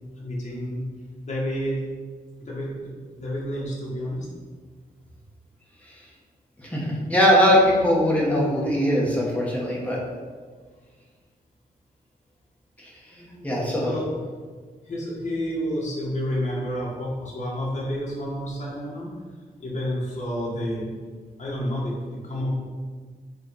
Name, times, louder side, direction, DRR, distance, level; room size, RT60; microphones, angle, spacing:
voice 1, 0.2-0.8 1.2-1.8 2.4-2.9 3.2-4.3 13.1-13.5 13.8-14.2 14.9-19.1 19.6-20.8 21.4-22.6, equal, 45° left, -5 dB, 2.0 m, -30 dB
voice 2, 6.7-10.0 13.4-13.9, equal, 10° left, -4 dB, 1.4 m, -20 dB
6.5 x 3.5 x 5.5 m, 1.5 s
wide cardioid pair, 170°, 16 cm